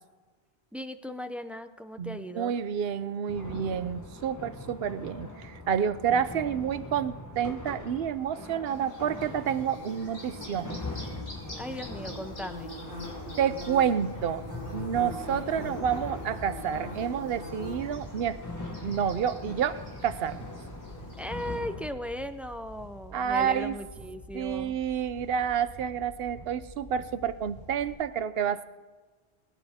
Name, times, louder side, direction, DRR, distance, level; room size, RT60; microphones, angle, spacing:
voice 1, 0.7-2.5 11.6-12.7 21.2-24.8, left 1 dB, ahead, 9 dB, 0.4 m, -37 dB
voice 2, 2.0-10.8 13.4-14.4 14.7-18.4 18.8-20.4 23.1-23.8 24.3-28.6, right 8 dB, 65° right, 13 dB, 0.9 m, -29 dB
sound 1, 3.3-21.9, left 2 dB, 15° left, 1.0 m, -42 dB
Bird / Buzz, 8.6-21.6, left 1 dB, 55° left, 3.2 m, -44 dB
sound 2, 12.0-28.0, equal, 40° left, 4.6 m, -48 dB
21.0 x 10.0 x 3.6 m, 1.3 s
omnidirectional pair, 1.1 m